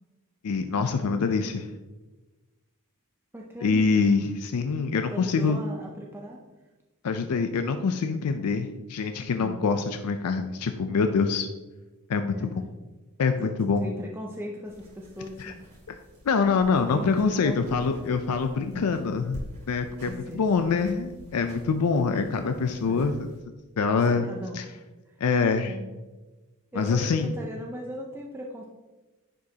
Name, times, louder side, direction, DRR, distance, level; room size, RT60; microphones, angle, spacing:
voice 1, 0.4-1.7 3.6-5.6 7.0-11.5 12.1-12.5 13.2-13.8 15.4-15.5 16.3-23.1 23.8-24.2 24.5-24.6 25.2-25.7 26.8-27.3, left 5 dB, 85° left, 7 dB, 0.4 m, -25 dB
voice 2, 3.3-3.9 5.1-6.4 9.4-9.7 12.3-12.6 13.4-13.5 13.8-15.6 16.9-17.6 20.0-20.7 22.9-23.2 24.0-24.7 25.1-25.2 25.6-25.9 26.7-28.7, equal, 10° right, -1 dB, 0.5 m, -38 dB
sound 1, 14.6-23.4, equal, 35° right, 2.5 m, -47 dB
10.0 x 5.1 x 2.8 m, 1.2 s
head